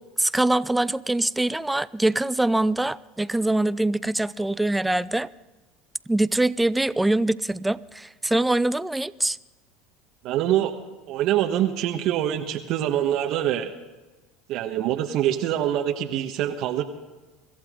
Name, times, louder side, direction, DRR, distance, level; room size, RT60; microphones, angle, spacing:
voice 1, 0.0-5.3 6.1-9.4, right 2 dB, 10° right, 0.5 m, -23 dB
voice 2, 10.2-10.7 11.1-13.7 14.5-16.8, right 11 dB, 60° right, 1.2 m, -24 dB
25.5 x 14.5 x 3.8 m
hypercardioid pair, 90°, 0 cm